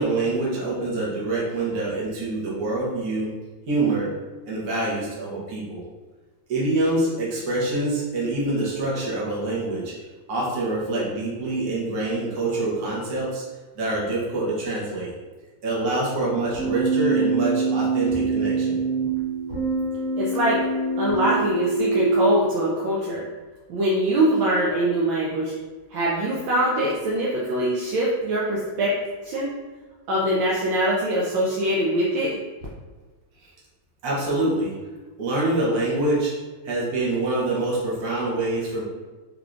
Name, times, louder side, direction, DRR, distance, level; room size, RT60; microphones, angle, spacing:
voice 1, 0.0-3.3 3.7-4.1 4.5-5.8 6.5-13.4 13.7-15.1 15.6-18.8 33.4-33.5 34.0-34.7 35.2-36.3 36.6-38.8, right 2 dB, 55° right, -6 dB, 1.4 m, -25 dB
Keyboard (musical), 16.5-22.5, right 3 dB, 10° right, 0.7 m, -24 dB
voice 2, 20.2-20.6 21.0-23.3 23.7-25.5 25.9-28.9 29.2-29.5 30.1-32.4, right 1 dB, 75° right, -5 dB, 1.3 m, -23 dB
3.5 x 3.5 x 2.5 m, 1.3 s
omnidirectional pair, 2.3 m